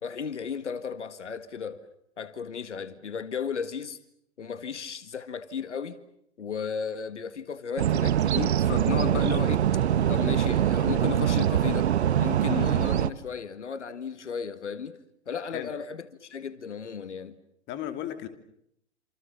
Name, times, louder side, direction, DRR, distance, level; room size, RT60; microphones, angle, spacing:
voice 1, 0.0-1.9 2.2-4.0 4.4-6.0 6.4-9.7 10.1-11.9 12.2-15.0 15.3-17.4, left 6 dB, 80° left, 1.8 m, -34 dB
sound 1, 7.8-13.1, right 10 dB, 65° right, 1.3 m, -24 dB
voice 2, 17.7-18.3, left 11 dB, 30° left, 3.0 m, -35 dB
27.5 x 27.5 x 7.1 m
hypercardioid pair, 120°, 35 cm